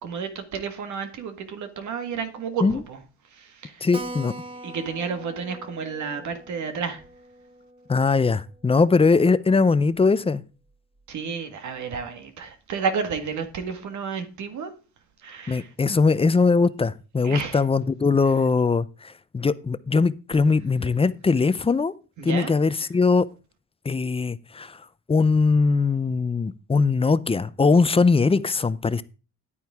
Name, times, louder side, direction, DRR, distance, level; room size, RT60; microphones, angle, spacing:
voice 1, 0.0-3.0 3.3-3.9 4.6-7.0 11.1-14.7 15.2-15.7 17.2-17.6 22.2-22.5, right 6 dB, 70° right, 1.8 m, -31 dB
voice 2, 3.8-4.3 7.9-10.4 15.5-21.9 22.2-23.3 23.8-24.8 25.1-29.0, left 4 dB, 20° left, 0.6 m, -21 dB
Keyboard (musical), 3.9-9.0 9.3-9.4 9.6-9.7 10.0-10.1 10.7-11.0, right 1 dB, 20° right, 1.6 m, -42 dB
10.0 x 9.0 x 3.6 m
cardioid pair, 90°, 30 cm